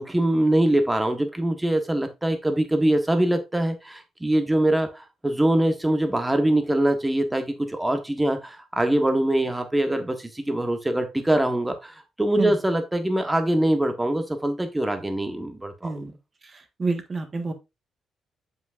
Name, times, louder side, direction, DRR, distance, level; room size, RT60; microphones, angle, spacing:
voice 1, 0.0-16.0, right 1 dB, 10° right, 1.3 m, -23 dB
voice 2, 16.5-17.5, right 3 dB, 30° right, 1.5 m, -28 dB
7.3 x 6.0 x 2.6 m
cardioid pair, 140°, 0 cm